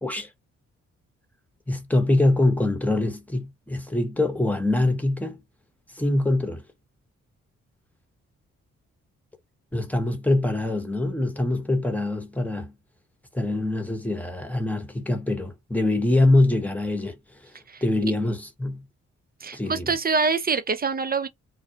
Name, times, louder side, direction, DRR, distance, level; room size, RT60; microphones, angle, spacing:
voice 1, 1.7-5.4 6.0-6.6 9.7-12.7 13.3-17.2 17.8-18.8 19.5-19.9, left 2 dB, 5° left, 1.0 m, -24 dB
voice 2, 17.7-18.1 19.4-21.3, right 4 dB, 30° right, 0.6 m, -25 dB
2.4 x 2.1 x 2.7 m
supercardioid pair, 45°, 32 cm